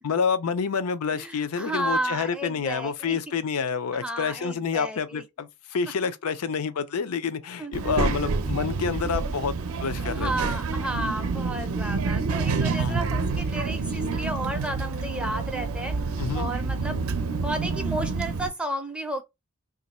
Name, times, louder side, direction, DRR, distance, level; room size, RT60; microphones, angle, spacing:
voice 1, 0.0-9.5 9.8-10.5 12.8-13.0 16.2-16.5, left 6 dB, 85° left, 0.5 m, -28 dB
voice 2, 1.1-3.2 4.0-5.2 7.6-7.7 10.0-17.0 17.4-19.2, right 1 dB, 5° right, 0.4 m, -32 dB
Child speech kid speaking, 7.7-18.5, right 4 dB, 75° right, 0.5 m, -28 dB
3.0 x 2.5 x 4.1 m
head